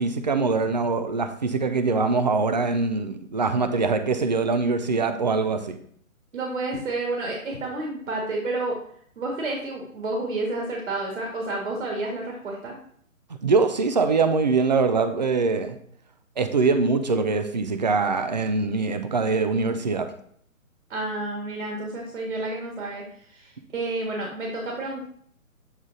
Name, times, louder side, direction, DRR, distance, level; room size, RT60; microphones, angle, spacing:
voice 1, 0.0-5.8 13.4-15.8 16.4-20.1, right 4 dB, 30° right, 8 dB, 0.5 m, -23 dB
voice 2, 6.3-8.8 9.2-12.8 20.9-25.0, right 2 dB, 55° right, -1 dB, 1.8 m, -30 dB
8.1 x 3.6 x 3.9 m, 0.62 s
figure-of-eight pair, 135°, 43 cm